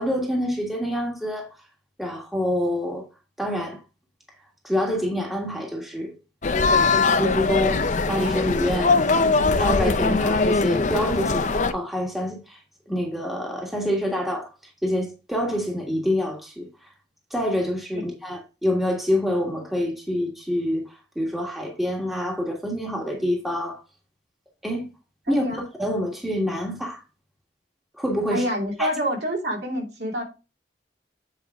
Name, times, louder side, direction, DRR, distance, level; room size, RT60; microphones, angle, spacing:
voice 1, 0.0-1.5 2.0-3.1 3.4-3.8 4.6-6.2 7.2-9.0 9.6-12.6 12.9-14.5 14.8-16.7 17.3-23.8 24.6-24.9 25.3-27.0 28.0-28.5 28.8-28.9, left 1 dB, ahead, 1.5 m, -26 dB
sound 1, 6.4-11.7, left 3 dB, 40° left, 0.6 m, -21 dB
voice 2, 25.3-25.6 28.3-30.2, equal, 65° right, 2.8 m, -27 dB
8.3 x 5.0 x 3.5 m
head